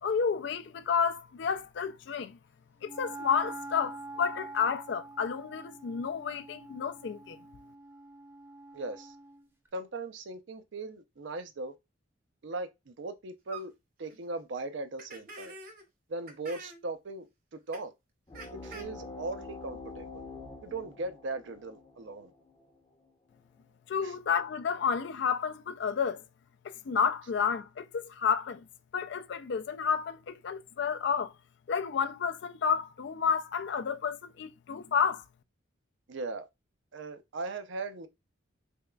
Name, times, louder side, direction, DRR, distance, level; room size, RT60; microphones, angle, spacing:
voice 1, 0.0-2.4 2.8-7.4 23.9-26.2 26.6-28.6 28.9-31.3 31.7-35.2, left 6 dB, 60° left, 0.4 m, -31 dB
Wind instrument woodwind instrument, 2.8-9.5, right 2 dB, 10° right, 0.6 m, -45 dB
voice 2, 8.7-9.1 9.7-11.7 12.4-13.7 14.0-15.6 16.1-17.3 17.5-17.9 18.5-20.1 20.6-22.3 24.0-24.1 36.1-36.5 36.9-38.1, right 2 dB, 65° right, 0.5 m, -38 dB
sound 1, 13.5-13.6 14.0-14.2 15.0-15.8 16.3-16.8 17.7-17.8 18.3-18.8, right 2 dB, 45° right, 0.9 m, -45 dB
sound 2, 18.3-23.4, left 3 dB, 20° left, 0.7 m, -46 dB
4.0 x 3.5 x 2.2 m
head